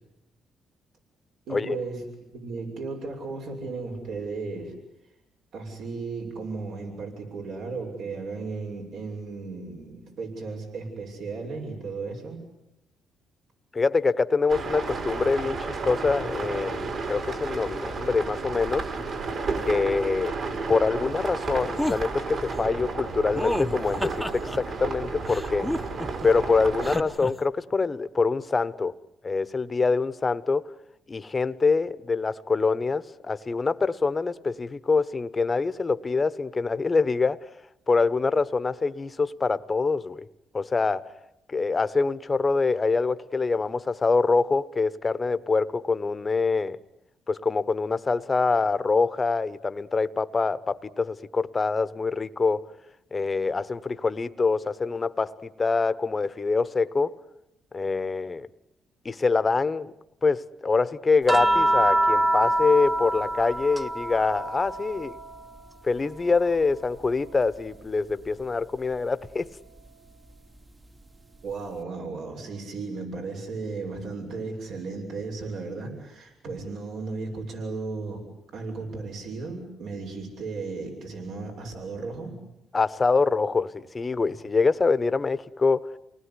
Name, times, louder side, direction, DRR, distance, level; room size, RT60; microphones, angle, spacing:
voice 1, 1.5-2.0 2.3-4.7 5.5-12.4 71.4-78.2 78.5-82.4, right 4 dB, 75° right, 6.7 m, -35 dB
voice 2, 13.7-18.9 19.6-20.3 20.7-25.7 26.2-28.9 29.2-30.6 31.1-37.5 37.9-40.3 40.5-41.1 41.5-46.8 47.3-52.6 53.1-57.2 57.7-58.5 59.0-59.9 60.2-65.2 65.8-69.5 82.7-85.9, left 4 dB, 30° left, 1.1 m, -25 dB
sound 1, 14.5-27.0, right 4 dB, 55° right, 5.2 m, -32 dB
sound 2, 21.8-22.0 23.4-24.6 25.3-26.3 26.8-27.3, left 1 dB, 5° left, 1.0 m, -30 dB
sound 3, 61.3-65.8 66.1-67.8 69.3-69.4, right 1 dB, 20° right, 1.2 m, -26 dB
29.0 x 19.5 x 9.9 m
cardioid pair, 90°, 0 cm